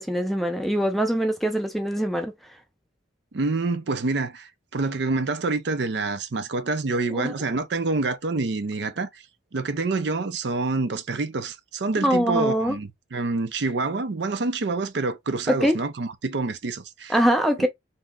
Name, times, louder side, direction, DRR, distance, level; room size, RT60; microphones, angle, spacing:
voice 1, 0.0-2.3 7.1-7.3 12.0-12.8 15.5-15.8 17.1-17.7, equal, ahead, 0.4 m, -23 dB
voice 2, 3.3-9.2 9.5-17.1, right 3 dB, 70° right, 0.5 m, -27 dB
2.8 x 2.1 x 3.6 m
head